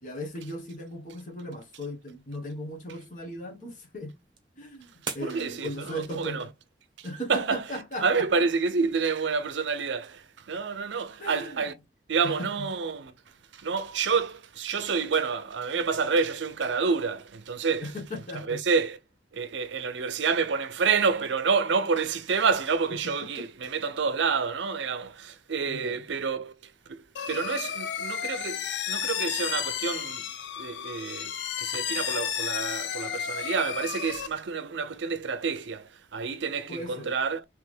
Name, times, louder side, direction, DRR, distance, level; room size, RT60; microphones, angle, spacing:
voice 1, 0.0-4.1 4.6-6.5 7.0-8.2 11.2-11.7 12.2-12.5 17.8-18.6 23.0-23.5 25.7-26.0 36.7-37.1, equal, 45° left, 1.2 m, -37 dB
sound 1, 2.2-7.2, right 5 dB, 25° right, 0.8 m, -46 dB
voice 2, 5.2-6.4 7.0-7.6 8.0-11.7 12.1-13.1 13.5-17.9 18.3-19.0 19.3-30.3 30.6-31.3 31.6-37.4, right 5 dB, 80° right, 0.6 m, -28 dB
sound 2, 27.2-34.3, left 9 dB, 75° left, 0.4 m, -32 dB
3.4 x 3.1 x 3.4 m
head